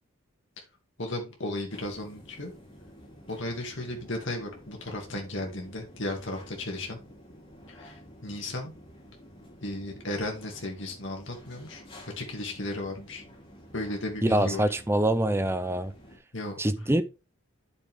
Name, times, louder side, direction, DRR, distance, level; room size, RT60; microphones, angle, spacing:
voice 1, 1.0-2.5 3.3-7.0 7.7-8.7 9.6-11.8 12.2-13.2 13.7-14.6 16.3-16.5, left 1 dB, 55° left, 2.5 m, -35 dB
sound 1, 1.7-16.2, equal, 25° left, 2.7 m, -51 dB
voice 2, 14.2-15.9 16.6-17.0, right 1 dB, 10° right, 0.6 m, -25 dB
9.0 x 6.9 x 3.6 m
head